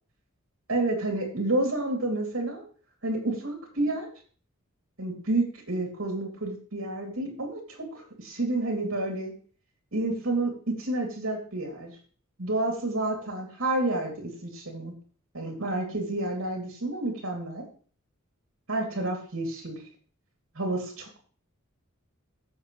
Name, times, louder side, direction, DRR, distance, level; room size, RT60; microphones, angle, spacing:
voice 1, 0.7-2.6 3.0-4.1 5.0-9.3 9.9-11.9 12.4-14.9 15.3-17.7 18.7-19.8 20.6-21.2, right 2 dB, 70° right, 1 dB, 3.3 m, -30 dB
15.0 x 7.0 x 3.4 m, 0.42 s
head